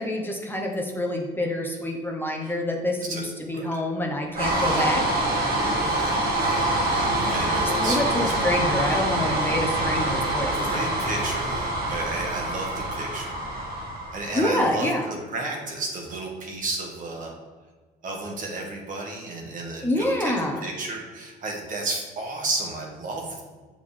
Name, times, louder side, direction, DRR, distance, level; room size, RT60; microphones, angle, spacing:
voice 1, 0.0-5.0 7.6-10.7 14.3-15.1 19.8-20.6, left 1 dB, 10° left, 0 dB, 1.0 m, -27 dB
voice 2, 3.0-3.8 4.5-4.8 5.8-8.6 9.4-9.6 10.5-13.4 14.1-17.3 18.0-23.4, right 2 dB, 50° right, 0 dB, 1.6 m, -33 dB
sound 1, 4.3-14.6, right 1 dB, 70° right, 2.0 m, -25 dB
7.6 x 5.1 x 3.5 m, 1.3 s
cardioid pair, 110°, 17 cm